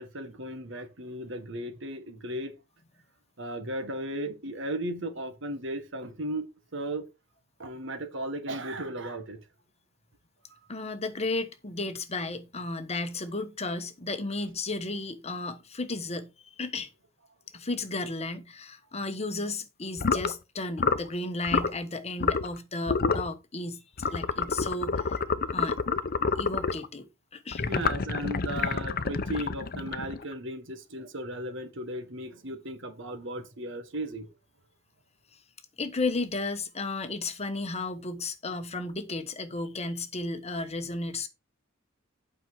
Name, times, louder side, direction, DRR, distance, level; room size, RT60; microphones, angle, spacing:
voice 1, 0.0-2.5 3.4-6.5 6.7-7.1 7.6-9.4 27.7-34.3, right 1 dB, 65° right, 1.7 m, -36 dB
voice 2, 10.7-16.9 17.5-25.2 25.5-25.8 26.4-27.6 35.8-41.3, left 2 dB, 35° left, 1.2 m, -34 dB
sound 1, 20.0-20.3 20.8-21.1 21.4-21.7 22.2-22.6 22.9-23.3 24.0-26.9 27.5-30.3, left 5 dB, 50° left, 0.7 m, -28 dB
8.6 x 5.8 x 4.7 m
head